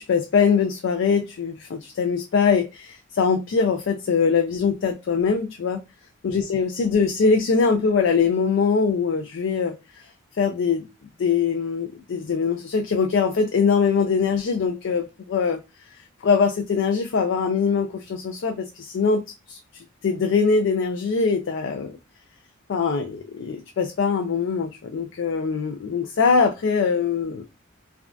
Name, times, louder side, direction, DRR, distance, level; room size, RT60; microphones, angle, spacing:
voice 1, 0.0-5.8 6.2-10.1 10.4-10.8 11.2-15.6 16.0-19.2 19.5-22.0 22.7-27.4, left 5 dB, 65° left, 0.4 m, -22 dB
3.5 x 2.2 x 2.4 m
head